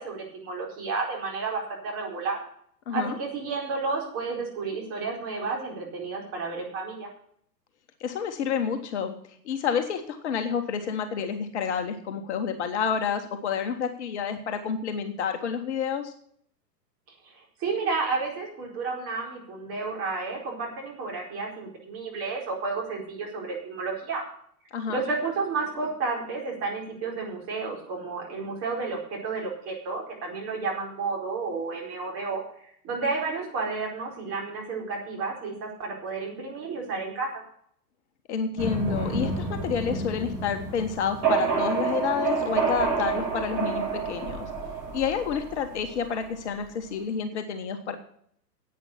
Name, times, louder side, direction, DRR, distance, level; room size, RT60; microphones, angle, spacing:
voice 1, 0.0-2.4 2.9-7.1 17.2-24.2 24.9-32.4 32.8-37.4, right 4 dB, 25° right, -1 dB, 4.5 m, -31 dB
voice 2, 8.0-9.1 9.4-16.1 24.7-25.0 38.3-44.5 44.9-48.0, left 7 dB, 40° left, 6 dB, 1.3 m, -29 dB
sound 1, 38.6-46.2, right 5 dB, 40° right, 6.5 m, -29 dB
11.0 x 8.7 x 7.0 m, 0.64 s
figure-of-eight pair, 110°, 50 cm